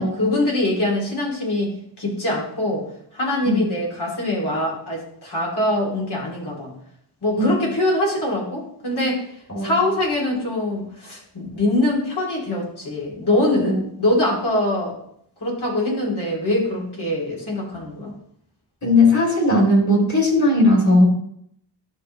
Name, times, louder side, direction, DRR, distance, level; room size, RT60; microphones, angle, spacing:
voice 1, 0.0-2.8 3.1-6.7 7.2-9.2 9.6-14.9 15.4-18.1, left 1 dB, 60° left, -4 dB, 3.2 m, -23 dB
voice 2, 18.8-21.0, left 1 dB, 40° left, -2 dB, 3.3 m, -17 dB
11.5 x 5.6 x 3.3 m, 0.70 s
wide cardioid pair, 100°, 44 cm